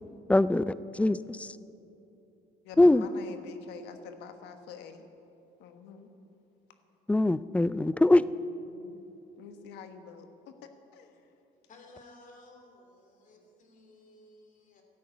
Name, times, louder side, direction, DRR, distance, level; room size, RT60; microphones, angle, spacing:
voice 1, 0.3-1.6 2.8-3.1 7.1-8.2, left 2 dB, 10° left, 16 dB, 0.3 m, -23 dB
voice 2, 2.6-5.1 5.6-6.1 8.7-9.0 9.4-11.2 13.3-13.4, left 6 dB, 85° left, 7 dB, 1.3 m, -47 dB
voice 3, 11.7-14.8, left 2 dB, 50° left, 3 dB, 2.8 m, -55 dB
12.5 x 11.0 x 8.4 m, 2.8 s
cardioid pair, 110°, 17 cm